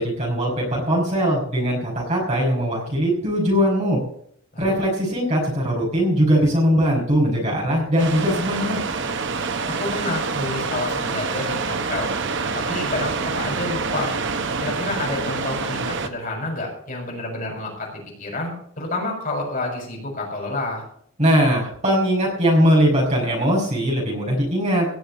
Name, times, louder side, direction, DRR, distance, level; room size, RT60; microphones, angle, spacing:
voice 1, 0.0-4.0 4.6-8.8 21.2-24.9, equal, 35° right, -4 dB, 5.1 m, -20 dB
sound 1, 8.0-16.1, right 4 dB, 55° right, 1.1 m, -26 dB
voice 2, 9.8-12.1 12.5-14.1 14.6-20.8, left 2 dB, 40° left, -1 dB, 6.7 m, -29 dB
18.0 x 6.9 x 7.5 m, 0.66 s
head